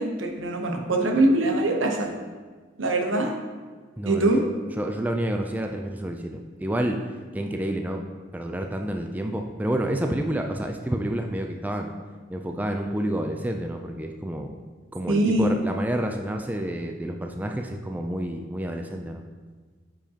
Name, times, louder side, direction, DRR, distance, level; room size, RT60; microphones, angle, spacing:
voice 1, 0.0-2.1 2.8-3.3 4.0-4.4 15.1-15.5, right 2 dB, 85° right, 3 dB, 0.9 m, -23 dB
voice 2, 4.0-4.4 4.8-7.0 7.3-8.0 8.3-11.9 12.3-14.5 14.9-19.2, right 1 dB, 10° right, 3 dB, 0.3 m, -29 dB
8.6 x 5.1 x 2.9 m, 1.4 s
head